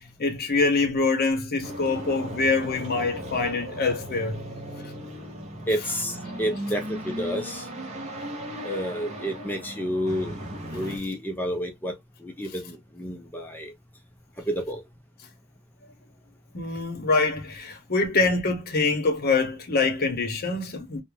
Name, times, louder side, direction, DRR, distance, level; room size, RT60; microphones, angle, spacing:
voice 1, 0.0-4.4 16.5-21.0, left 3 dB, 45° left, 0.7 m, -25 dB
sound 1, 1.6-11.0, equal, 30° right, 0.7 m, -37 dB
voice 2, 5.7-7.7 8.6-10.4 10.7-13.7 14.5-14.8, equal, 10° left, 0.4 m, -30 dB
2.4 x 2.1 x 3.0 m
head